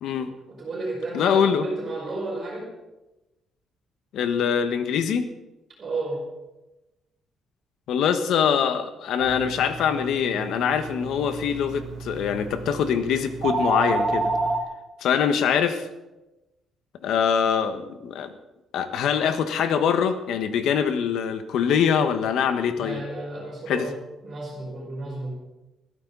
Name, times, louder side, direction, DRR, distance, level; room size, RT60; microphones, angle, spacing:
voice 1, 0.2-2.7 5.8-6.2 22.8-24.0 24.2-25.3, right 2 dB, 30° right, -7 dB, 5.3 m, -32 dB
voice 2, 1.1-1.7 4.1-5.3 7.9-14.3 15.0-15.9 17.0-18.3 18.7-23.0 23.7-23.9, left 7 dB, 70° left, 8 dB, 1.5 m, -23 dB
sound 1, 9.2-14.6, right 3 dB, 50° right, 2.1 m, -30 dB
21.0 x 14.5 x 4.1 m, 1.0 s
cardioid pair, 175°, 0 cm